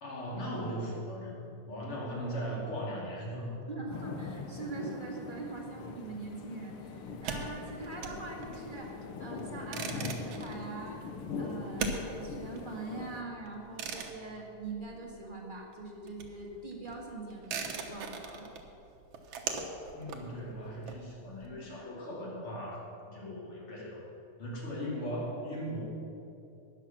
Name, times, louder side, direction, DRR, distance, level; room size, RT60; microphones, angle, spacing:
voice 1, 0.0-3.7 19.9-24.0 24.4-25.8, equal, 50° left, -4 dB, 3.4 m, -38 dB
voice 2, 3.7-8.9 9.2-11.0 11.4-18.5, right 3 dB, 35° right, -2 dB, 0.8 m, -43 dB
sound 1, 3.9-13.2, left 4 dB, 70° left, 1.4 m, -42 dB
sound 2, 7.1-15.4 15.7-21.5, right 5 dB, 60° right, 1.3 m, -41 dB
12.5 x 10.0 x 5.9 m, 2.8 s
omnidirectional pair, 3.3 m